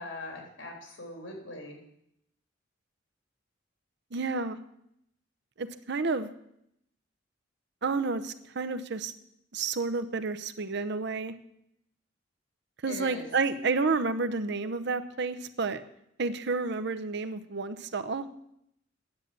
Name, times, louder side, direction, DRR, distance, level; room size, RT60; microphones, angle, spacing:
voice 1, 0.0-1.8 12.9-13.3, left 2 dB, 80° left, 1 dB, 3.6 m, -41 dB
voice 2, 4.1-4.6 5.6-6.3 7.8-9.1 9.5-11.3 12.8-15.8 16.2-18.3, right 4 dB, 60° right, 11 dB, 0.7 m, -30 dB
9.7 x 7.3 x 8.6 m, 0.76 s
head